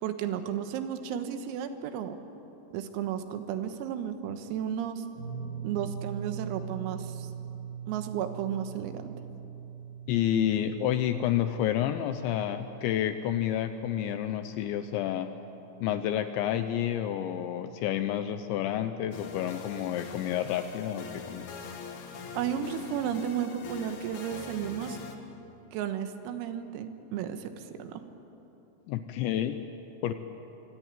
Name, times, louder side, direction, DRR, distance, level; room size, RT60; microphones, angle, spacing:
voice 1, 0.0-2.2 2.7-5.1 5.6-7.3 7.9-9.1 22.4-25.0 25.7-28.0, right 9 dB, 85° right, 8 dB, 4.0 m, -33 dB
sound 1, 5.2-17.4 17.7-17.9 19.6-19.7, right 7 dB, 55° right, 8.5 m, -43 dB
voice 2, 10.1-15.3 15.8-21.5 28.9-29.6 30.0-30.1, left 11 dB, 80° left, 9 dB, 2.7 m, -29 dB
sound 2, 19.1-25.2, left 5 dB, 65° left, 1.9 m, -43 dB
25.5 x 24.5 x 9.0 m, 3.0 s
omnidirectional pair, 6.0 m